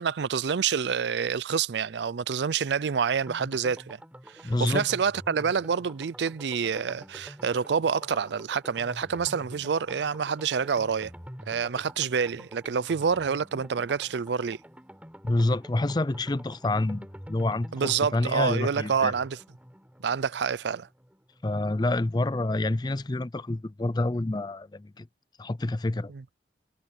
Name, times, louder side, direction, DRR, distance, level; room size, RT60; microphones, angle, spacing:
voice 1, 0.0-4.0 4.3-11.1 11.5-14.6 17.7-19.4 20.0-20.9 26.1-26.2, right 6 dB, 75° right, 0.5 m, -27 dB
sound 1, 3.3-21.9 22.2-22.3 22.5-22.6, equal, 10° right, 5.0 m, -47 dB
voice 2, 4.4-4.9 15.2-19.1 21.4-25.1 25.4-26.1, left 2 dB, 25° left, 0.5 m, -28 dB
head